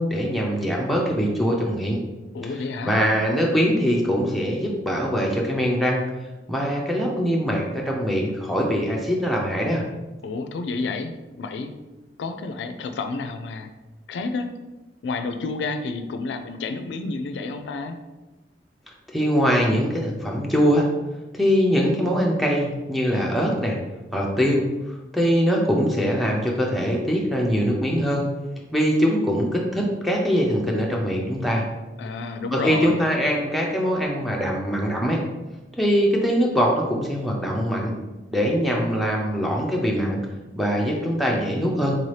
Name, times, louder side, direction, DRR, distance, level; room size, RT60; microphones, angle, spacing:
voice 1, 0.0-2.0 2.8-6.0 6.5-9.8 19.1-20.9 21.3-23.8 24.1-24.6 25.1-28.2 28.7-31.6 32.5-35.2 35.8-37.9 38.3-40.2 40.5-42.0, equal, ahead, -2 dB, 0.5 m, -22 dB
voice 2, 2.3-3.0 10.2-11.7 12.2-13.7 14.1-14.5 15.0-18.0 32.0-33.0, left 3 dB, 80° left, 7 dB, 0.3 m, -30 dB
4.0 x 2.7 x 3.2 m, 1.1 s
head